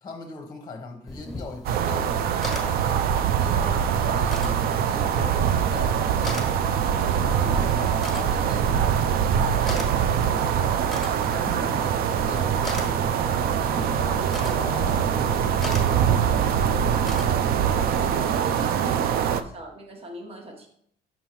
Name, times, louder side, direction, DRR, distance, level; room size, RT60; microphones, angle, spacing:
voice 1, 0.0-2.8 3.3-3.8 4.1-6.7 7.2-8.9 9.9-10.5 11.3-13.2 13.6-16.3 17.9-18.5, left 3 dB, 20° left, 2 dB, 0.9 m, -39 dB
sound 1, 1.1-18.0, left 2 dB, ahead, 1.4 m, -41 dB
sound 2, 1.6-19.4, right 8 dB, 65° right, 0.4 m, -23 dB
voice 2, 3.6-3.9 18.2-20.7, right 1 dB, 35° right, 2 dB, 1.2 m, -40 dB
5.9 x 5.5 x 3.0 m, 0.66 s
cardioid pair, 110°, 17 cm